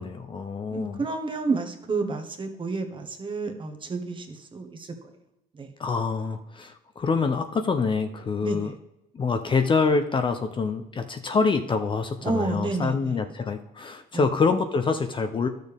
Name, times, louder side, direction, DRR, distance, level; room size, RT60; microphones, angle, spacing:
voice 1, 0.0-1.0 5.8-8.7 9.1-15.5, left 4 dB, 30° left, 7 dB, 0.6 m, -26 dB
voice 2, 0.7-4.9 5.6-5.7 8.4-8.7 12.2-13.2 14.1-14.3, right 3 dB, 30° right, 5 dB, 1.2 m, -30 dB
11.5 x 6.5 x 3.5 m, 0.92 s
cardioid pair, 110°, 17 cm